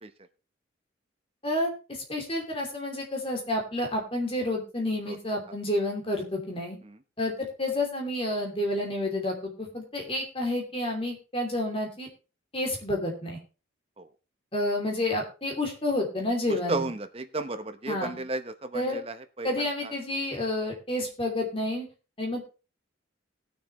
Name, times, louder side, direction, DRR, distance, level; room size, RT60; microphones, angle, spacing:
voice 1, 2.1-6.8 7.2-12.1 12.5-13.4 14.5-16.9 17.9-18.1 18.7-19.0 19.4-21.9 22.2-22.4, left 1 dB, 30° left, 1 dB, 2.9 m, -29 dB
voice 2, 16.5-19.9, right 2 dB, 30° right, 9 dB, 0.8 m, -34 dB
19.5 x 6.7 x 3.1 m, 0.32 s
head